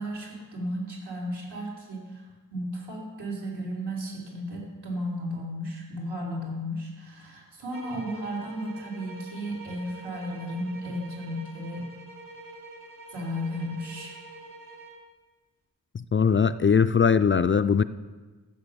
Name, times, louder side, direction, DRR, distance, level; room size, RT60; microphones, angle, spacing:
voice 1, 0.0-2.2 2.5-11.9 13.1-14.2, equal, 80° right, -4 dB, 4.5 m, -34 dB
sound 1, 7.7-15.1, right 2 dB, 60° right, 3.2 m, -46 dB
voice 2, 15.9-17.8, left 6 dB, 35° left, 12 dB, 0.4 m, -21 dB
14.5 x 7.6 x 6.9 m, 1.3 s
wide cardioid pair, 75°, 38 cm